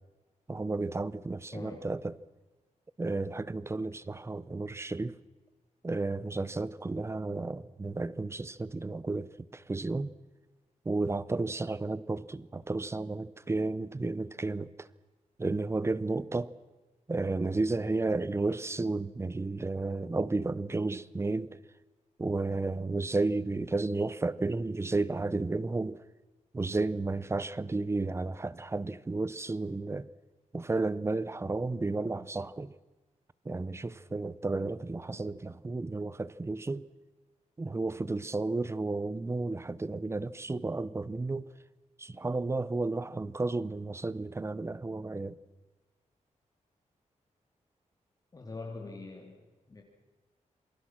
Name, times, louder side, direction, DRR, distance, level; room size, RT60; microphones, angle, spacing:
voice 1, 0.5-2.2 3.0-5.2 5.8-10.1 10.8-14.9 15.4-16.5 17.1-21.6 22.2-26.0 26.5-30.1 30.5-32.7 33.4-36.9 37.6-41.5 42.0-45.4, right 3 dB, 20° right, 0.8 m, -32 dB
voice 2, 1.5-1.9 48.3-49.8, left 3 dB, 30° left, 3.1 m, -44 dB
28.0 x 23.0 x 6.0 m
wide cardioid pair, 160°, 13 cm